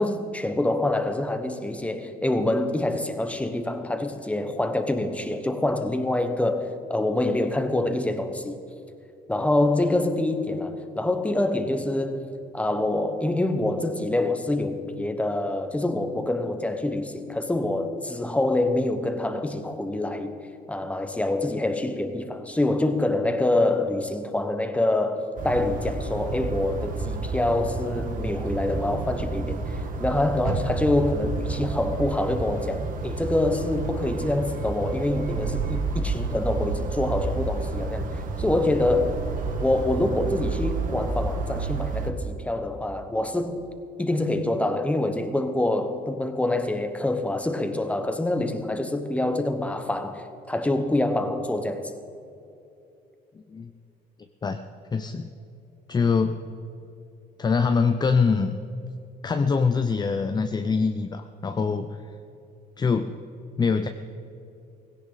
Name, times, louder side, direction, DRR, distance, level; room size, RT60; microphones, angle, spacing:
voice 1, 0.0-8.6 9.3-20.3 20.7-39.2 39.6-43.7 44.0-51.9, left 2 dB, 10° left, 1.3 m, -26 dB
sound 1, 25.4-42.1, right 4 dB, 55° right, 1.7 m, -30 dB
voice 2, 53.3-53.7 54.4-54.6 54.9-55.3 55.9-56.4 57.4-58.5 59.2-61.9 62.8-63.2 63.6-63.9, left 5 dB, 25° left, 0.6 m, -24 dB
17.5 x 16.5 x 4.1 m
cardioid pair, 110°, 17 cm